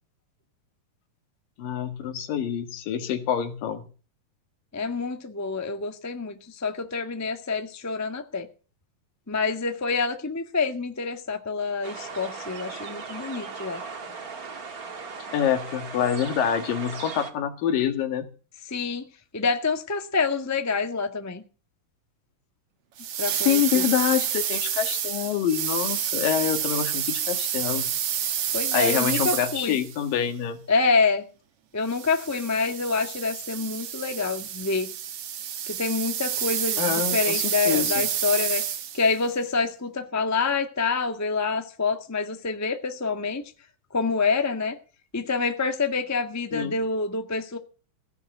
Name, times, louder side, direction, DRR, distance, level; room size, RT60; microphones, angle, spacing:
voice 1, 1.6-3.9 15.3-18.3 23.5-27.9 28.7-30.6 36.8-38.0 46.5-46.7, left 9 dB, 80° left, 3.5 m, -26 dB
voice 2, 4.7-8.5 9.3-13.8 18.7-19.0 19.3-21.4 23.2-23.9 28.5-29.8 30.7-31.2 31.7-34.9 35.7-38.6 38.9-43.5 43.9-44.8 45.1-47.6, left 4 dB, 20° left, 0.4 m, -27 dB
sound 1, 11.8-17.3, right 4 dB, 35° right, 1.7 m, -38 dB
sound 2, 23.0-30.0 31.9-39.1, right 9 dB, 55° right, 1.8 m, -29 dB
16.5 x 6.5 x 9.3 m
omnidirectional pair, 3.9 m